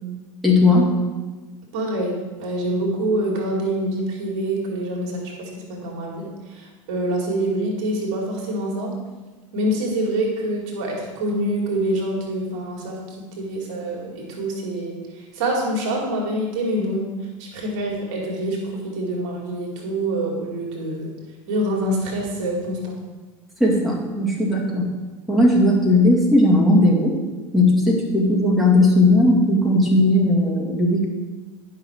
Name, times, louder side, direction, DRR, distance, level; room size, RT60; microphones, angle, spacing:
voice 1, 0.4-0.9 23.6-24.9 25.3-27.2 27.5-31.0, left 1 dB, ahead, -4 dB, 2.2 m, -17 dB
voice 2, 1.7-8.9 9.5-13.0 13.4-17.1 17.4-21.1 21.5-23.0, right 1 dB, 60° right, -2 dB, 2.2 m, -26 dB
10.0 x 5.7 x 4.5 m, 1.3 s
figure-of-eight pair, 75°, 17 cm